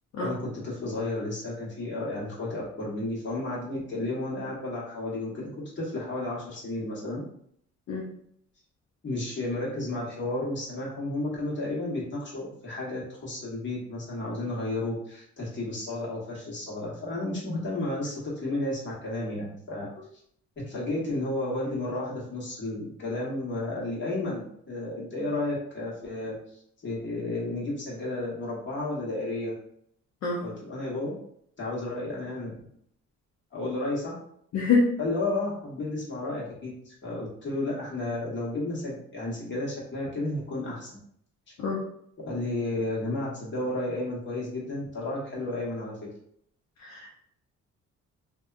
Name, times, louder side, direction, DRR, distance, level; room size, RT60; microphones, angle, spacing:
voice 1, 0.2-7.2 9.0-19.9 20.7-26.3 26.8-29.5 30.4-31.2 31.6-32.5 33.5-34.2 35.0-41.0 41.5-41.6 42.2-46.1, left 2 dB, 40° left, -5 dB, 1.3 m, -32 dB
voice 2, 34.5-34.9 41.6-41.8 46.8-47.1, left 4 dB, 60° left, -3 dB, 0.6 m, -25 dB
2.6 x 2.2 x 2.4 m, 0.68 s
cardioid pair, 90°, 30 cm